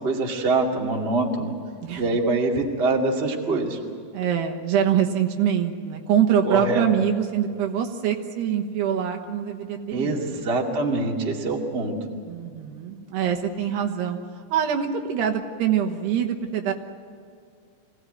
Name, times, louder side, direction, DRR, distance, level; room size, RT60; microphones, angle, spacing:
voice 1, 0.0-1.5 1.9-3.8 6.5-6.9 9.9-11.9, right 3 dB, 25° right, 0 dB, 1.2 m, -24 dB
voice 2, 4.1-10.4 12.3-14.2 14.5-16.7, right 8 dB, 75° right, 3 dB, 3.1 m, -24 dB
24.5 x 17.5 x 9.1 m, 2.1 s
omnidirectional pair, 5.2 m